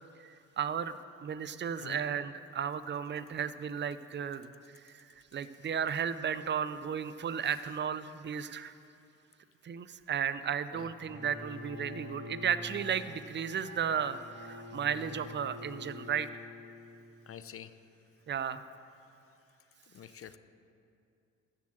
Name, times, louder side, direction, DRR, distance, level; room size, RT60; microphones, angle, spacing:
voice 1, 0.2-0.9 1.2-4.5 4.8-8.7 9.6-16.3 18.3-18.7, right 8 dB, 35° right, 14 dB, 0.6 m, -34 dB
Bowed string instrument, 11.0-17.1, left 2 dB, 90° right, 3.3 m, -46 dB
voice 2, 17.3-17.7 19.9-20.4, left 9 dB, 45° left, 12 dB, 0.7 m, -46 dB
13.0 x 7.5 x 7.6 m, 2.6 s
cardioid pair, 90°, 30 cm